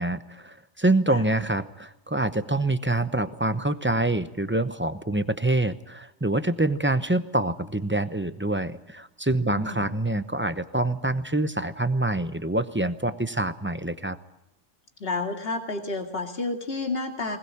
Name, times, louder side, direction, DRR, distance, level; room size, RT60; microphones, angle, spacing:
voice 1, 0.0-14.2, right 2 dB, 10° right, 12 dB, 0.7 m, -26 dB
voice 2, 9.4-9.9 15.0-17.4, left 3 dB, 50° left, 4 dB, 2.6 m, -30 dB
20.5 x 20.5 x 8.5 m, 0.90 s
omnidirectional pair, 1.3 m